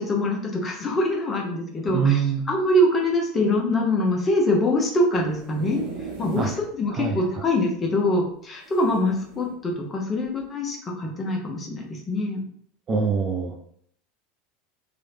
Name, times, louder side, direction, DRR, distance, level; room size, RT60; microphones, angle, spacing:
voice 1, 0.0-5.8 6.2-12.4, left 1 dB, 25° left, 0 dB, 0.9 m, -24 dB
voice 2, 1.9-2.5 6.4-6.5 7.0-7.2 12.9-13.6, right 6 dB, 30° right, 3 dB, 0.5 m, -23 dB
sound 1, 5.1-6.7 7.1-7.2 7.4-7.5 8.6-9.6 10.2-10.4, right 5 dB, 50° right, 1.4 m, -37 dB
3.1 x 3.0 x 2.7 m, 0.64 s
figure-of-eight pair, 75°, 0 cm